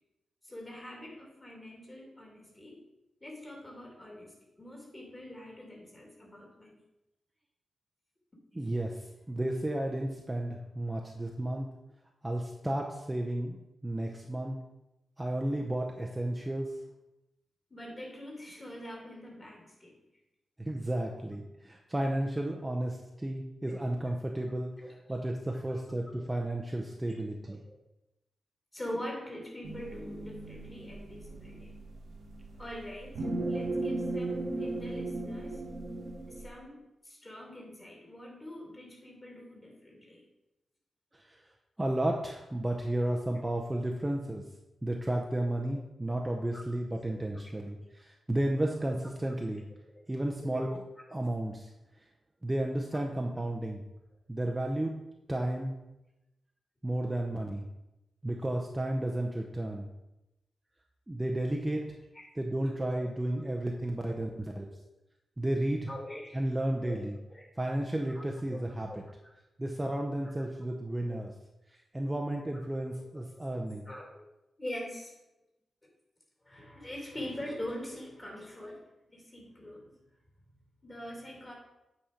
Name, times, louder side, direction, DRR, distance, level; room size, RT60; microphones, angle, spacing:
voice 1, 0.4-2.8 3.2-6.8 17.7-20.0 23.7-23.8 25.7-25.8 26.1-26.2 27.7-27.8 28.7-31.7 32.6-35.6 36.3-40.2 46.5-46.6 47.1-47.6 49.3-49.4 49.9-50.1 50.4-50.7 62.1-62.3 63.0-63.1 65.9-66.4 66.8-67.0 67.3-67.5 68.1-68.6 68.9-69.0 72.5-73.2 73.9-74.2 74.6-75.1 76.4-78.8 79.1-79.9 80.8-81.5, left 1 dB, 20° left, -1 dB, 2.4 m, -44 dB
voice 2, 8.5-11.7 12.2-13.6 13.8-14.6 15.2-16.7 20.6-27.6 41.1-41.4 41.8-44.4 44.8-49.6 50.1-50.8 51.1-51.7 52.4-53.8 54.3-55.0 55.3-55.7 56.8-57.6 58.2-59.9 61.1-61.8 62.4-64.7 65.4-65.9 66.3-67.2 67.6-68.9 69.6-71.3 71.7-73.9, right 1 dB, 15° right, 1 dB, 0.7 m, -33 dB
sound 1, 29.6-36.5, right 2 dB, 80° right, 1.4 m, -37 dB
8.7 x 4.3 x 5.0 m, 0.94 s
wide cardioid pair, 120°, 0 cm